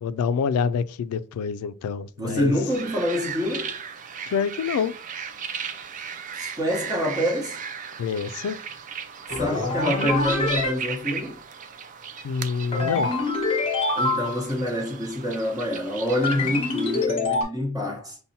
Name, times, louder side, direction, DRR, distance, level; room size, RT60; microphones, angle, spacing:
voice 1, 0.0-2.5 4.3-4.9 8.0-8.6 12.2-13.1, left 6 dB, 90° left, 0.3 m, -26 dB
voice 2, 2.2-3.8 6.3-7.6 9.4-11.4 13.9-18.2, equal, 20° right, 1.0 m, -26 dB
sound 1, 2.7-17.1, right 7 dB, 35° right, 0.3 m, -36 dB
sound 2, 9.3-10.7 12.7-14.5 16.2-17.4, left 3 dB, 25° left, 1.0 m, -25 dB
5.3 x 2.1 x 2.7 m
head